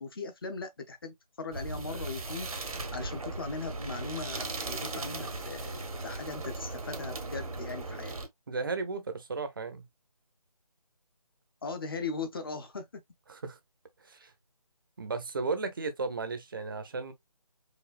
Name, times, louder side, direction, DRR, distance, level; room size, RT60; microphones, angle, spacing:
voice 1, 0.0-8.1 11.6-12.9, left 4 dB, 35° left, 0.7 m, -39 dB
sound 1, 1.5-8.3, right 2 dB, 65° right, 0.9 m, -37 dB
voice 2, 8.5-9.9 13.3-13.6 14.0-14.3 15.0-17.1, right 4 dB, 35° right, 0.7 m, -34 dB
5.0 x 2.3 x 2.4 m
figure-of-eight pair, 155°, 19 cm